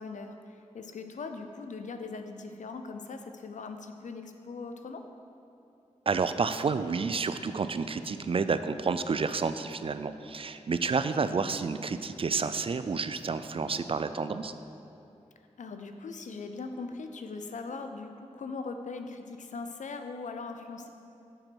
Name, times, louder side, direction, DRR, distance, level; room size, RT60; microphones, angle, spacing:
voice 1, 0.0-5.0 15.6-20.9, left 4 dB, 75° left, 6 dB, 0.6 m, -40 dB
voice 2, 6.1-14.5, right 5 dB, 45° right, 11 dB, 0.4 m, -30 dB
7.7 x 4.4 x 6.1 m, 2.8 s
cardioid pair, 45°, 13 cm